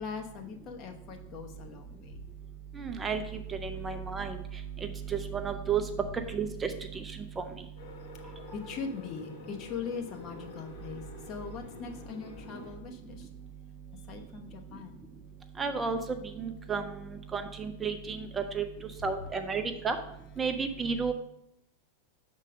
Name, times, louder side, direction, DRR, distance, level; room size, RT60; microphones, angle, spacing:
voice 1, 0.0-2.2 8.2-13.3 14.1-15.0, left 5 dB, 35° left, 3 dB, 1.0 m, -41 dB
voice 2, 2.8-3.2 3.5-4.4 5.1-5.8 6.3-7.0 7.4-7.5 15.6-16.0 16.4-17.0 17.3-18.6 19.0-20.0 20.4-21.1, right 5 dB, 15° right, 6 dB, 0.5 m, -32 dB
sound 1, 7.8-12.8, left 3 dB, 50° left, 1.3 m, -48 dB
6.5 x 3.8 x 6.2 m, 0.80 s
figure-of-eight pair, 90°, 0 cm